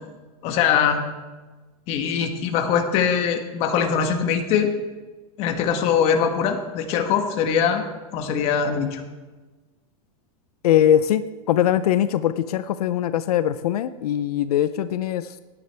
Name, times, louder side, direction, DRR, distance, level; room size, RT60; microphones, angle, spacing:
voice 1, 0.4-1.0 1.9-4.7 5.4-7.8 8.1-9.0, left 7 dB, 35° left, 5 dB, 1.3 m, -22 dB
voice 2, 10.6-15.4, left 11 dB, 85° left, 13 dB, 0.6 m, -21 dB
16.5 x 9.7 x 3.4 m, 1.3 s
supercardioid pair, 165°, 19 cm